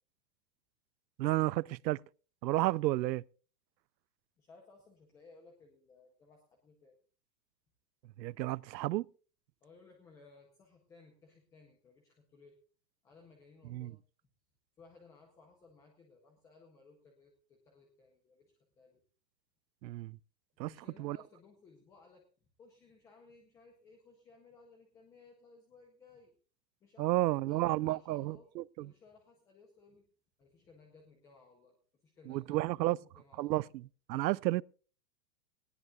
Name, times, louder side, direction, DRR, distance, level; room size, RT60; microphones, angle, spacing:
voice 1, 1.2-2.0 2.4-3.2 8.2-9.1 13.7-13.9 19.8-20.2 20.6-20.7 21.0-21.2 27.0-28.9 32.3-33.0 33.4-34.6, right 17 dB, 85° right, 0.6 m, -32 dB
voice 2, 4.4-7.0 9.6-12.6 13.0-14.0 14.8-19.0 20.6-22.3 22.6-26.3 26.8-28.5 28.8-30.1 30.4-33.7, left 4 dB, 5° left, 0.6 m, -60 dB
19.0 x 17.0 x 2.3 m
supercardioid pair, 170°, 50 cm